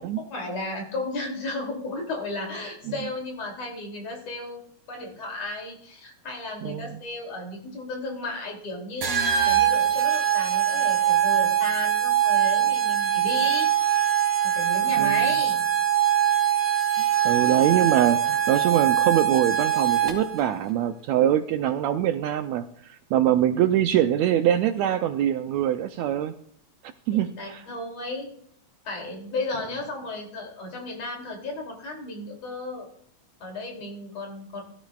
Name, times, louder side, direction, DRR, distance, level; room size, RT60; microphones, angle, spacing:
voice 1, 0.0-13.7 14.4-15.7 27.1-28.3 28.8-32.9 33.4-34.6, left 2 dB, 55° left, 1 dB, 3.8 m, -34 dB
voice 2, 6.6-6.9 15.0-15.3 17.2-26.3 27.1-27.6, right 11 dB, 80° right, 8 dB, 1.7 m, -23 dB
sound 1, 9.0-20.4, right 10 dB, 55° right, 3.0 m, -22 dB
16.5 x 12.5 x 2.4 m, 0.64 s
omnidirectional pair, 3.5 m